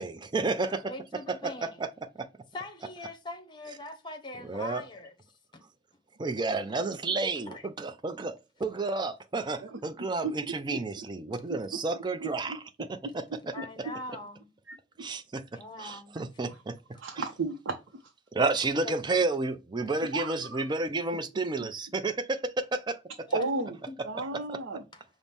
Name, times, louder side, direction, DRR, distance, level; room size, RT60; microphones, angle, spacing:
voice 1, 0.0-0.9 1.4-1.9 2.2-2.3 4.5-4.8 6.2-13.5 15.0-16.8 18.3-23.0 24.5-24.6, right 3 dB, 25° right, 0.4 m, -31 dB
voice 2, 0.8-1.8 2.5-5.6 7.5-7.7 13.5-14.5 15.5-16.2 16.5-16.6 18.8-19.0 23.3-24.0 24.9-25.0, left 2 dB, 25° left, 0.8 m, -42 dB
voice 3, 10.7-11.1 11.5-11.6 12.2-12.6 13.0-13.1 13.6-13.7 14.7-14.8 17.0-17.8 20.1-20.6 23.3-23.7 24.0-24.8, right 3 dB, 80° right, 0.6 m, -33 dB
5.6 x 2.1 x 3.3 m
head